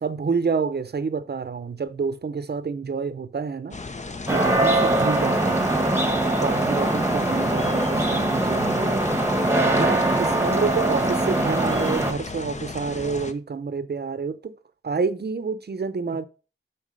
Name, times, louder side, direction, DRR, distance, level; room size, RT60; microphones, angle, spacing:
voice 1, 0.0-3.8 4.3-5.7 6.4-9.0 9.7-14.6 14.8-16.3, right 5 dB, 50° right, 0.7 m, -28 dB
sound 1, 3.7-13.3, left 3 dB, 35° left, 0.7 m, -35 dB
sound 2, 4.3-12.1, right 1 dB, 10° right, 1.1 m, -22 dB
7.4 x 4.5 x 5.3 m
wide cardioid pair, 85°, 21 cm